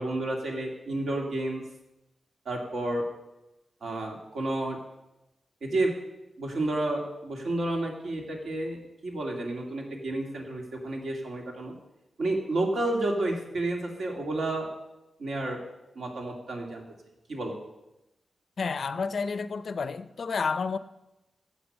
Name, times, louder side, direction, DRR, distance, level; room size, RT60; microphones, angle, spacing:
voice 1, 0.0-1.6 2.5-3.1 3.8-4.8 5.6-5.9 6.4-11.7 12.2-14.7 15.2-15.6 16.0-16.8 17.3-17.5, right 2 dB, 65° right, 2.4 m, -30 dB
voice 2, 18.6-20.8, left 5 dB, 50° left, 0.5 m, -30 dB
14.0 x 8.2 x 5.5 m
wide cardioid pair, 175°, 0 cm